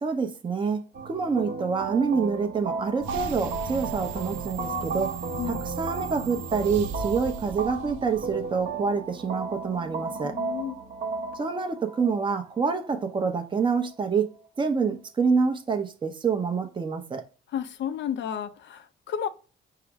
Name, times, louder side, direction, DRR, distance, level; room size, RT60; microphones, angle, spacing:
voice 1, 0.0-0.8 1.1-5.1 5.4-10.4 11.3-14.3 14.6-17.2, right 5 dB, 25° right, 0.7 m, -27 dB
sound 1, 0.9-13.9, right 4 dB, 50° right, 0.9 m, -35 dB
sound 2, 3.0-8.4, right 5 dB, 85° right, 0.6 m, -37 dB
voice 2, 5.4-5.7 10.2-10.8 17.5-19.3, left 9 dB, 65° left, 0.5 m, -32 dB
4.8 x 2.0 x 4.6 m
cardioid pair, 90°, 20 cm